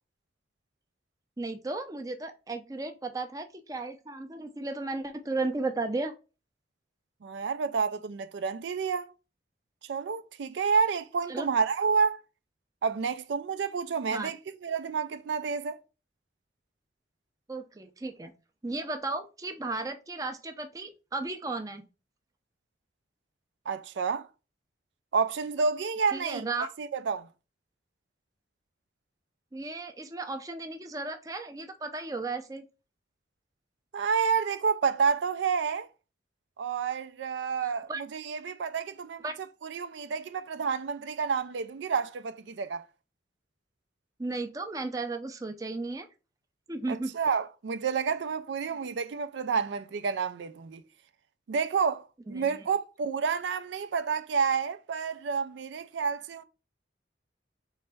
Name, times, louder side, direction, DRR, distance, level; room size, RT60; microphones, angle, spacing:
voice 1, 1.4-6.1 11.3-11.5 14.1-14.3 17.5-18.3 18.6-21.9 26.1-26.7 29.5-32.6 37.6-38.0 39.2-39.3 44.2-46.1 46.7-47.1 48.7-48.8 52.3-52.7, right 3 dB, 20° right, 0.5 m, -35 dB
voice 2, 7.2-9.1 9.9-12.2 12.8-14.4 14.6-15.8 23.7-24.3 25.1-26.5 26.8-27.3 33.9-35.9 36.6-39.3 39.6-42.8 46.9-50.8 51.5-56.4, right 5 dB, 80° right, 0.4 m, -29 dB
4.0 x 3.3 x 3.4 m
head